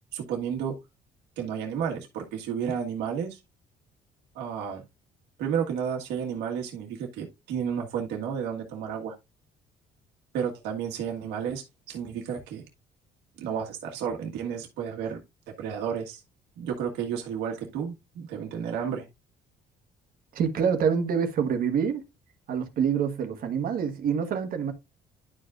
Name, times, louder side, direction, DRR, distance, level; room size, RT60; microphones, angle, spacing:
voice 1, 0.1-0.7 1.4-3.4 4.3-4.8 5.4-9.1 10.3-12.6 13.4-15.2 15.6-16.2 16.6-19.0, right 7 dB, 85° right, 1.7 m, -32 dB
voice 2, 20.3-22.0 22.5-24.7, right 7 dB, 60° right, 1.4 m, -26 dB
11.0 x 5.0 x 2.5 m
cardioid pair, 110°, 17 cm